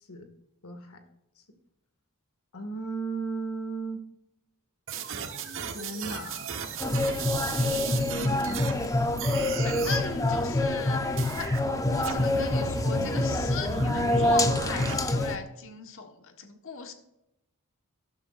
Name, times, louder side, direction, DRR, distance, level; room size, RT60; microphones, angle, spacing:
voice 1, 0.6-1.0 2.5-4.0 5.7-6.5, right 4 dB, 80° left, 6 dB, 1.9 m, -35 dB
sound 1, 4.9-8.9 9.2-10.1 11.2-11.6 12.0-14.9, right 5 dB, 60° right, 1.1 m, -35 dB
sound 2, 6.8-15.4, left 1 dB, 15° left, 0.6 m, -26 dB
voice 2, 7.4-8.9 9.2-11.0 11.3-11.6 11.9-16.9, left 4 dB, 65° left, 5 dB, 1.3 m, -38 dB
13.0 x 11.5 x 2.5 m, 0.86 s
head